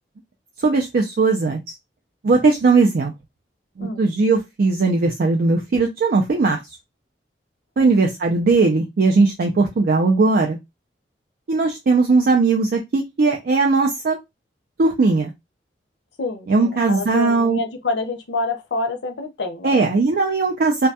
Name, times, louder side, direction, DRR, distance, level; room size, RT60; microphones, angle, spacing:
voice 1, 0.6-1.6 2.2-3.1 3.8-6.6 7.8-10.6 11.5-14.2 14.8-15.3 16.5-17.6 19.6-20.9, right 3 dB, 55° right, 0.4 m, -18 dB
voice 2, 16.2-19.8, left 3 dB, 80° left, 0.6 m, -27 dB
2.2 x 2.2 x 2.7 m
head